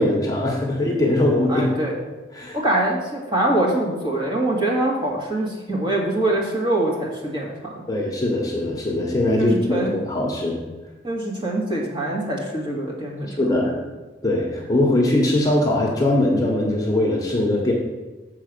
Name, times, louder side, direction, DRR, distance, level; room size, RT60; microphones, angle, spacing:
voice 1, 0.0-1.7 2.3-2.6 7.9-10.6 13.4-13.7 14.2-17.7, left 1 dB, 20° left, -2 dB, 1.2 m, -21 dB
voice 2, 1.5-1.9 2.5-7.8 9.4-10.0 11.0-13.3, right 1 dB, 25° right, -3 dB, 1.9 m, -24 dB
7.1 x 4.8 x 6.7 m, 1.2 s
head